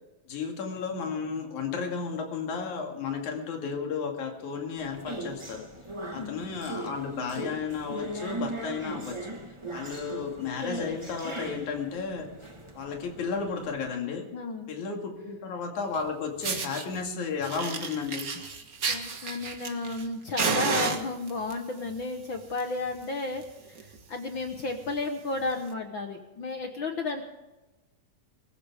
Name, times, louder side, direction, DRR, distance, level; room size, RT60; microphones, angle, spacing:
voice 1, 0.3-5.7 6.1-9.4 9.7-12.3 12.8-14.3 14.7-18.3, left 5 dB, 70° left, 2 dB, 3.7 m, -33 dB
sound 1, 4.8-13.9, right 1 dB, 25° right, 0.6 m, -39 dB
voice 2, 14.3-14.7 18.9-27.2, left 3 dB, 55° left, 5 dB, 1.5 m, -33 dB
Fire, 15.9-16.0 16.4-16.9 17.4-20.1 20.4-21.5 22.3-22.6 22.9-23.0 23.4-23.5 23.8-24.0 24.5-24.6 25.6-25.7, right 5 dB, 45° right, 1.1 m, -31 dB
24.5 x 15.0 x 3.6 m, 1.1 s
omnidirectional pair, 3.6 m